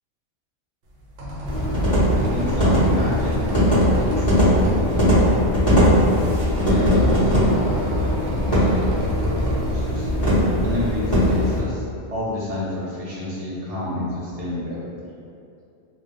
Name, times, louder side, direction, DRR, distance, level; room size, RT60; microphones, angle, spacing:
sound 1, 0.9-9.6, right 1 dB, 80° right, 1.0 m, -33 dB
sound 2, 1.4-11.6, equal, 25° left, 1.2 m, -19 dB
voice 1, 2.2-6.0 6.6-10.1 10.6-11.8 12.1-15.1, left 1 dB, 40° right, -8 dB, 0.6 m, -31 dB
2.7 x 2.2 x 3.5 m, 2.5 s
omnidirectional pair, 1.3 m